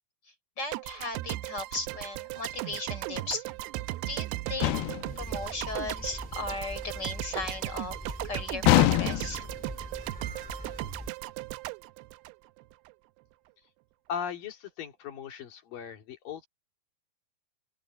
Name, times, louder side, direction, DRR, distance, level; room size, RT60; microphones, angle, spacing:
voice 1, 0.6-3.5 4.1-4.8 5.2-8.0 8.2-9.5, left 2 dB, 25° left, 4.5 m, -36 dB
sound 1, 0.7-12.9, right 18 dB, 85° right, 2.6 m, -37 dB
sound 2, 4.6-5.2 8.7-9.5, left 15 dB, 80° left, 2.4 m, -23 dB
sound 3, 5.0-11.1, equal, 5° left, 1.9 m, -42 dB
voice 2, 14.1-16.5, left 7 dB, 60° left, 4.2 m, -38 dB
open air
omnidirectional pair, 4.8 m